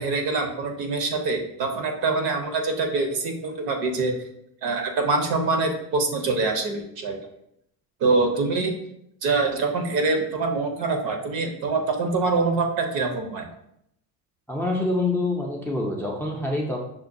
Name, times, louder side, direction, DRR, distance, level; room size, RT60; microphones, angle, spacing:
voice 1, 0.0-4.2 4.6-7.2 8.0-8.7 9.2-13.5, right 3 dB, 65° right, 4 dB, 0.8 m, -24 dB
voice 2, 14.5-16.8, left 2 dB, 5° left, -1 dB, 0.4 m, -26 dB
5.8 x 2.2 x 2.6 m, 0.76 s
cardioid pair, 115°, 39 cm